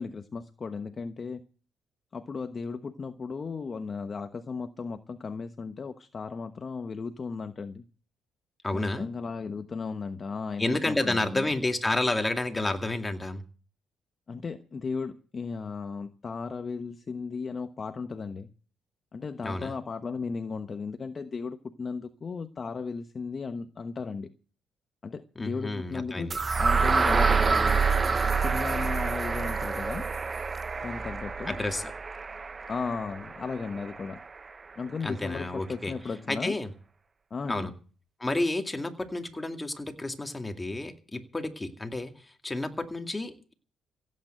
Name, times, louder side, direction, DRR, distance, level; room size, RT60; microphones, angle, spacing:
voice 1, 0.0-1.4 2.1-7.8 8.7-11.5 14.3-18.5 19.1-24.3 25.0-27.8 28.4-30.1 30.8-31.6 32.7-34.2 34.8-36.6 37.3-37.7, left 5 dB, 40° left, 8 dB, 1.1 m, -35 dB
voice 2, 8.6-9.1 10.6-13.4 19.4-19.8 25.4-26.4 31.5-31.9 35.0-35.9 36.3-36.7 37.5-37.7 38.2-43.5, left 2 dB, 15° left, 5 dB, 2.3 m, -30 dB
sound 1, 26.3-34.2, right 4 dB, 30° right, 0.8 m, -27 dB
16.0 x 8.8 x 7.8 m, 0.39 s
cardioid pair, 90°, 0 cm